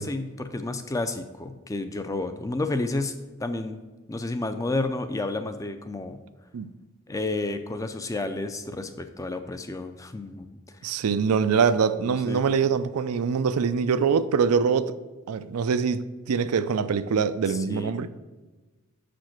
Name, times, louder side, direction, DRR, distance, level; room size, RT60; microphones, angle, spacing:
voice 1, 0.0-3.1 3.4-3.8 4.1-6.2 7.1-10.5 12.2-12.4 17.5-17.9, left 2 dB, 15° left, 0.3 m, -31 dB
voice 2, 10.8-15.0 15.3-18.1, right 6 dB, 90° right, 0.4 m, -24 dB
6.5 x 5.1 x 5.9 m
head